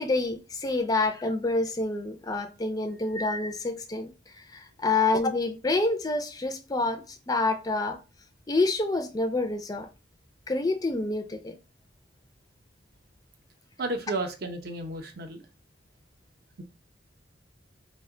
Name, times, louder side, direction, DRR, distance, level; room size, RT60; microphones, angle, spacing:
voice 1, 0.0-4.1 4.5-8.0 8.5-9.9 10.5-11.5, left 2 dB, 20° left, 0.3 m, -27 dB
voice 2, 13.8-15.5, right 2 dB, 55° right, 0.5 m, -32 dB
2.8 x 2.1 x 3.6 m
head